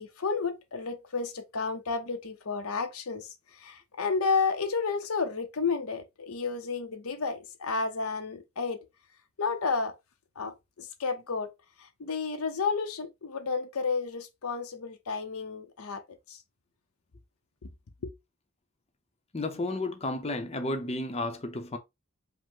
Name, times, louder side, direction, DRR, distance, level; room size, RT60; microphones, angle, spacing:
voice 1, 0.0-8.8 9.4-9.9 10.4-11.5 11.8-16.0 16.3-16.4 18.0-18.1, left 4 dB, 80° left, 0.8 m, -31 dB
voice 2, 19.3-21.8, left 2 dB, 30° left, 0.7 m, -32 dB
5.2 x 2.1 x 3.7 m
head